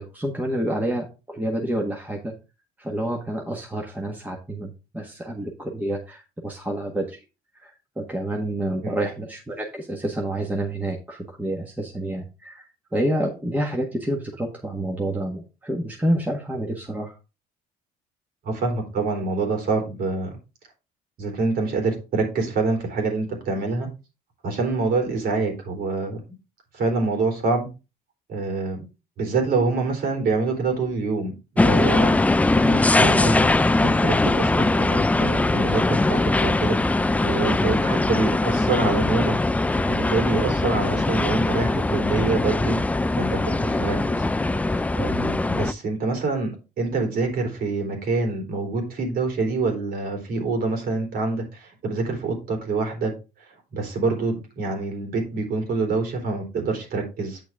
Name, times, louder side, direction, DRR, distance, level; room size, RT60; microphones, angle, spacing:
voice 1, 0.0-2.3 2.8-7.2 7.6-12.7 12.9-17.1, right 1 dB, 10° right, 0 dB, 1.5 m, -28 dB
voice 2, 18.4-20.4 21.2-23.9 24.4-26.2 26.7-27.7 28.3-28.9 29.2-33.4 33.8-36.8 37.2-39.4 39.9-42.8 43.1-44.2 45.0-53.1 53.7-57.4, right 3 dB, 65° right, 3 dB, 3.7 m, -26 dB
sound 1, 31.6-45.7, left 2 dB, 10° left, 0.3 m, -21 dB
8.9 x 6.0 x 3.5 m, 0.30 s
cardioid pair, 110°, 17 cm